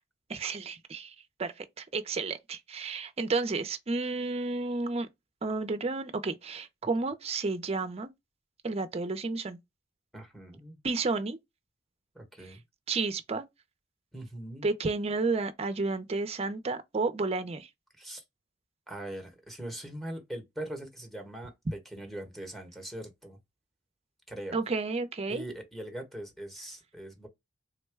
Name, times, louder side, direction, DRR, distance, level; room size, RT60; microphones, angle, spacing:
voice 1, 0.3-1.1 1.4-5.1 5.4-8.1 8.6-9.6 10.8-11.4 12.9-13.5 14.6-17.7 24.5-25.4, right 3 dB, 30° right, 0.5 m, -31 dB
voice 2, 10.1-10.8 12.1-12.6 14.1-14.7 18.0-18.2 18.9-23.4 24.3-24.6 25.3-27.3, right 1 dB, ahead, 1.0 m, -41 dB
3.7 x 2.1 x 3.3 m
head